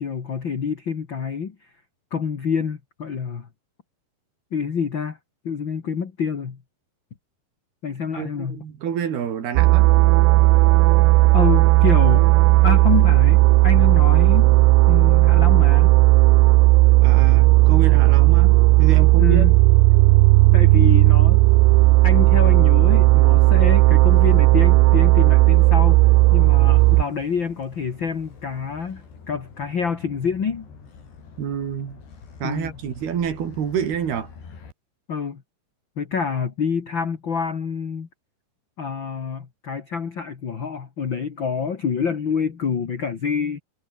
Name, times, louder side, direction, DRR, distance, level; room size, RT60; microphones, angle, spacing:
voice 1, 0.0-1.5 2.1-3.5 4.5-5.2 5.4-6.6 7.8-8.6 11.3-12.3 12.6-14.6 14.9-16.0 19.2-19.6 20.5-21.4 22.0-26.0 26.3-30.7 32.4-32.7 35.1-35.4 35.9-38.1 38.8-43.6, left 6 dB, 45° left, 1.7 m, -27 dB
voice 2, 8.2-9.9 17.0-19.5 31.4-32.0 32.4-34.3, right 8 dB, 65° right, 5.0 m, -28 dB
sound 1, 9.6-27.0, right 21 dB, 85° right, 2.8 m, -14 dB
Motor vehicle (road), 20.7-34.7, left 5 dB, 70° left, 7.9 m, -46 dB
omnidirectional pair, 5.0 m